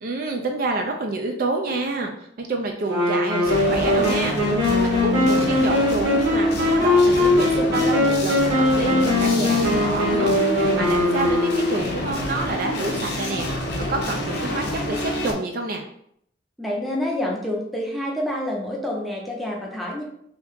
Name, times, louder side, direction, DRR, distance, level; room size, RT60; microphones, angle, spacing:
voice 1, 0.0-2.1 2.4-10.3 10.8-13.5 13.9-15.8, right 3 dB, 45° right, 2 dB, 0.4 m, -28 dB
Wind instrument woodwind instrument, 2.9-11.9, left 2 dB, 65° right, 1.2 m, -21 dB
sound 1, 3.4-15.3, left 1 dB, 55° left, 0.6 m, -27 dB
voice 2, 16.6-20.0, left 1 dB, ahead, -3 dB, 0.6 m, -27 dB
2.8 x 2.7 x 3.4 m, 0.70 s
head